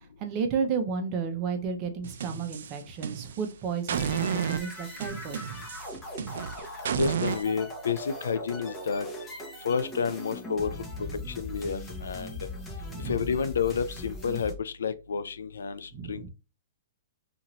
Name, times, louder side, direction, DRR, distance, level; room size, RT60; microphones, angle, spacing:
voice 1, 0.2-5.6 11.2-11.3 12.9-13.3 15.9-16.3, right 5 dB, 35° right, 0.7 m, -32 dB
sound 1, 2.0-3.5 3.9-7.4, right 8 dB, 70° right, 0.3 m, -32 dB
sound 2, 3.9-14.5, left 1 dB, 15° left, 0.9 m, -40 dB
voice 2, 7.0-9.1 9.6-10.7 11.4-12.3 13.1-16.3, left 6 dB, 85° left, 0.3 m, -30 dB
2.7 x 2.5 x 2.9 m
hypercardioid pair, 135°, 0 cm